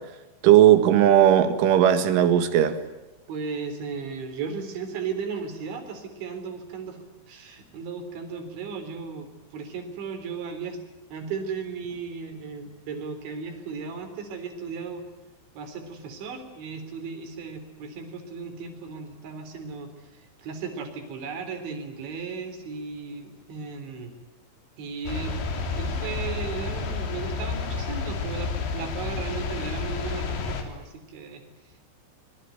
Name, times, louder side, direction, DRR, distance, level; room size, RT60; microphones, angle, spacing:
voice 1, 0.4-2.8, right 11 dB, 90° right, 9 dB, 4.4 m, -17 dB
voice 2, 3.3-10.8 11.1-15.0 15.5-24.1 24.8-25.4 25.8-31.9, right 5 dB, 75° right, 7 dB, 6.1 m, -36 dB
sound 1, 25.1-30.6, left 4 dB, 70° left, 5.3 m, -30 dB
25.0 x 22.5 x 9.2 m, 1.0 s
omnidirectional pair, 5.4 m